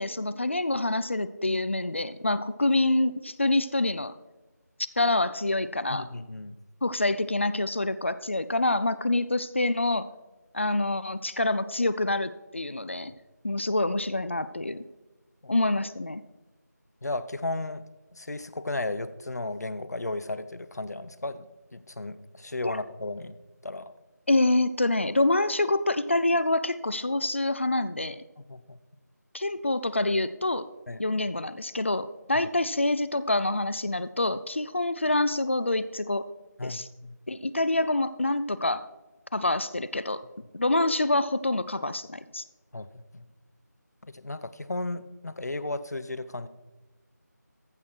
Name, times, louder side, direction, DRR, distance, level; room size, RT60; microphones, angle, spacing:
voice 1, 0.0-4.1 5.0-6.1 6.8-10.1 10.5-13.1 13.4-14.8 15.5-16.2 22.6-22.8 24.3-28.2 29.3-30.6 31.0-36.3 36.6-36.9 37.3-38.8 39.3-40.2 40.5-42.4, left 2 dB, 40° left, 14 dB, 0.4 m, -26 dB
voice 2, 5.9-6.5 13.1-13.2 15.4-15.5 17.0-17.8 18.1-23.3 23.6-23.9 28.4-28.8 30.9-31.1 36.6-37.2 42.7-43.3 44.0-46.5, left 2 dB, 65° left, 13 dB, 0.8 m, -35 dB
14.5 x 6.3 x 4.5 m, 1.1 s
figure-of-eight pair, 170°, 10 cm